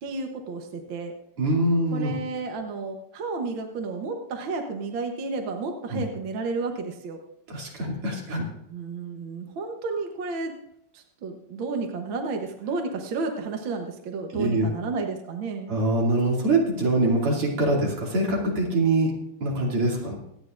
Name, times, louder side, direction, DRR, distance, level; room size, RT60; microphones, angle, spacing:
voice 1, 0.0-1.1 1.9-7.2 8.7-10.5 10.9-15.8, right 4 dB, 65° right, 3 dB, 1.8 m, -32 dB
voice 2, 1.4-2.1 5.9-6.0 7.5-8.4 14.3-14.8 15.7-19.1 19.4-20.2, right 2 dB, 85° right, -2 dB, 3.6 m, -24 dB
25.5 x 9.5 x 2.5 m, 0.76 s
omnidirectional pair, 2.4 m